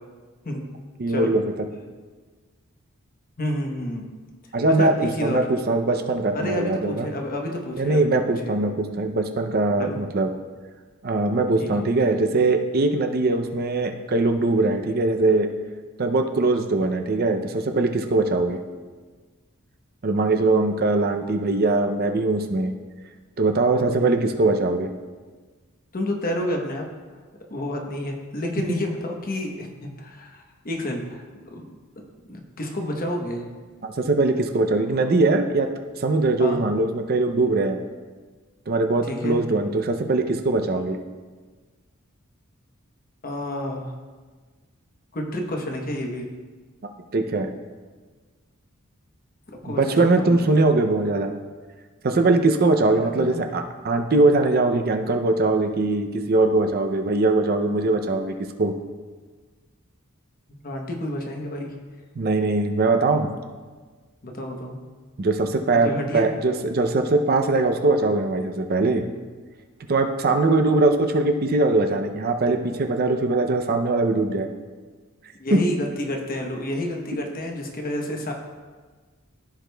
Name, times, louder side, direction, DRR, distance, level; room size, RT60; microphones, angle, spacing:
voice 1, 1.0-1.4 4.5-5.0 5.2-7.1 7.8-10.3 11.0-15.5 16.0-18.6 20.0-22.7 23.4-24.9 33.8-35.7 36.0-37.8 38.7-41.0 47.1-47.5 49.6-51.3 52.0-58.7 62.2-63.3 65.2-69.0 69.9-74.5 75.5-75.6, right 2 dB, 45° right, 5 dB, 0.5 m, -21 dB
voice 2, 3.4-4.0 4.8-5.4 6.3-8.1 8.4-8.5 9.8-10.0 11.6-11.7 12.0-12.1 23.8-24.1 25.9-26.8 27.5-31.2 31.5-31.7 32.3-33.4 36.4-36.6 39.1-39.4 43.2-43.9 45.1-46.3 49.5-50.5 52.9-53.4 60.6-61.7 64.2-64.8 65.8-66.3 75.4-78.3, left 1 dB, 40° left, 2 dB, 0.9 m, -29 dB
15.0 x 4.9 x 2.3 m, 1.4 s
head